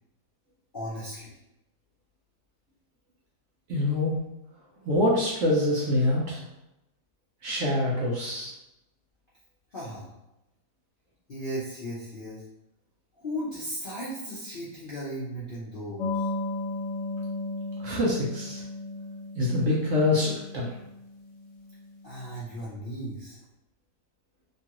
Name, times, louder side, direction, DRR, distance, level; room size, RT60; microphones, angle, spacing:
voice 1, 0.7-1.4 9.7-10.1 11.3-12.4 13.2-16.3 22.0-23.4, equal, 60° left, -9 dB, 0.5 m, -36 dB
voice 2, 3.7-4.2 4.8-6.4 7.4-8.5 17.8-18.6 19.4-20.7, left 1 dB, 65° right, -5 dB, 0.8 m, -25 dB
sound 1, 16.0-22.2, left 2 dB, 85° left, 1.2 m, -35 dB
3.0 x 2.4 x 2.8 m, 0.90 s
omnidirectional pair, 1.8 m